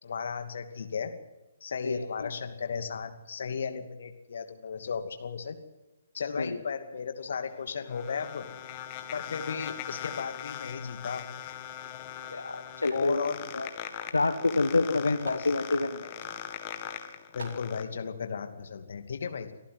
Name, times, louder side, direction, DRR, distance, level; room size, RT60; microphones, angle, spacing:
voice 1, 0.0-1.1 1.6-5.6 6.1-8.5 9.1-11.3 12.9-13.5 15.0-15.5 17.3-19.5, left 6 dB, 55° left, 7 dB, 2.5 m, -35 dB
voice 2, 1.8-2.3 6.4-6.6 12.3-13.7 14.1-16.1, left 3 dB, 75° left, 8 dB, 1.5 m, -28 dB
sound 1, 7.4-17.8, left 11 dB, 30° left, 2.0 m, -41 dB
sound 2, 12.8-13.1 14.0-14.2 14.4-14.5 15.2-15.5 16.2-16.4 16.9-17.0 17.4-17.7, right 3 dB, 60° right, 4.6 m, -45 dB
24.5 x 14.0 x 7.9 m, 1.1 s
figure-of-eight pair, 130°, 0 cm